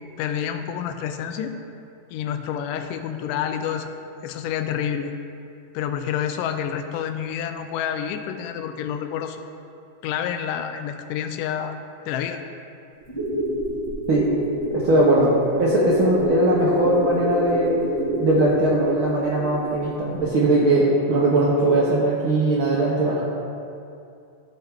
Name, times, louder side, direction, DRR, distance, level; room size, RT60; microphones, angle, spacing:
voice 1, 0.2-1.6 2.1-3.9 4.2-5.1 5.7-9.5 10.0-11.7 12.1-12.4, left 9 dB, 85° left, 7 dB, 2.2 m, -28 dB
sound 1, 13.0-19.9 20.1-20.2, equal, 10° left, 1.3 m, -27 dB
voice 2, 14.8-15.3 15.6-17.7 18.2-23.2, right 1 dB, 85° right, -5 dB, 1.1 m, -20 dB
13.5 x 5.8 x 3.5 m, 2.5 s
omnidirectional pair, 3.7 m